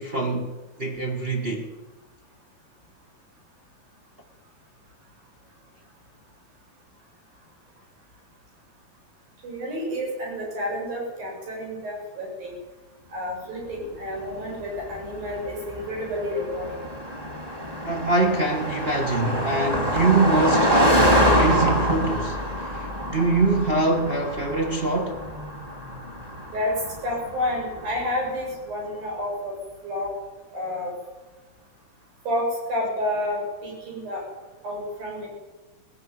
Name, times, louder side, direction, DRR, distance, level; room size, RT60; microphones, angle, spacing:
voice 1, 0.0-1.7 17.8-25.2, right 2 dB, 40° right, 0.8 m, -24 dB
voice 2, 9.4-12.5 13.1-16.8 26.5-26.7 27.0-29.6 29.8-30.1 30.5-30.9 32.3-34.2 34.6-35.3, left 1 dB, 85° right, 9.4 m, -30 dB
Car passing by, 14.4-28.1, equal, 5° right, 2.8 m, -26 dB
18.5 x 16.0 x 9.7 m
omnidirectional pair, 4.0 m